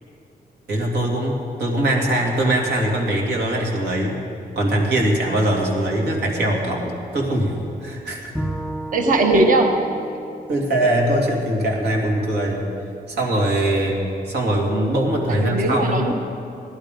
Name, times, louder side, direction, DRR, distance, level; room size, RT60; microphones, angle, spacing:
voice 1, 0.7-4.2 4.6-8.3 10.5-12.7 13.1-16.0, right 1 dB, 85° right, -1 dB, 2.5 m, -22 dB
Bowed string instrument, 8.3-11.6, right 1 dB, 5° right, 1.7 m, -33 dB
voice 2, 8.9-9.7 15.3-16.1, right 2 dB, 55° right, 3 dB, 1.3 m, -18 dB
17.5 x 11.0 x 5.2 m, 2.6 s
wide cardioid pair, 170°, 17 cm